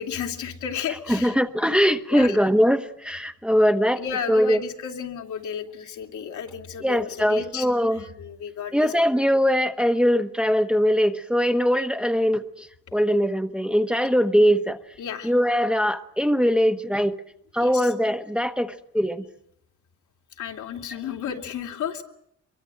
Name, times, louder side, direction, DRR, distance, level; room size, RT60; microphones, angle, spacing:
voice 1, 0.0-1.3 2.1-2.5 4.0-8.9 12.9-13.0 15.0-15.3 17.6-17.9 20.4-22.0, left 7 dB, 75° left, 3.0 m, -33 dB
voice 2, 1.1-4.0 4.3-4.6 6.8-8.0 8.7-12.7 12.9-14.8 15.2-17.2 17.5-19.2, equal, 5° right, 1.1 m, -21 dB
23.0 x 23.0 x 8.9 m
cardioid pair, 90°, 30 cm